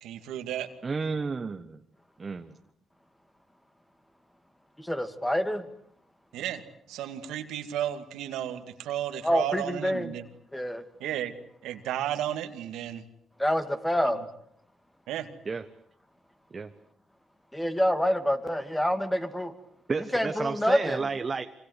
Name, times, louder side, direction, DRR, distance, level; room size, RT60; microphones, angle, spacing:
voice 1, 0.0-0.7 6.3-6.6 6.9-10.3 11.0-11.3 11.6-13.1 14.1-14.2 15.1-15.3, right 11 dB, 90° right, 8 dB, 2.3 m, -33 dB
voice 2, 0.8-1.8 2.2-2.6 15.4-15.6 16.5-16.7 19.9-21.4, right 4 dB, 35° right, 7 dB, 1.3 m, -32 dB
voice 3, 4.8-5.6 9.2-10.1 10.5-10.8 13.4-14.2 17.5-19.5 20.1-21.0, equal, 5° left, 9 dB, 2.6 m, -27 dB
26.5 x 25.5 x 8.3 m, 0.70 s
cardioid pair, 90°, 0 cm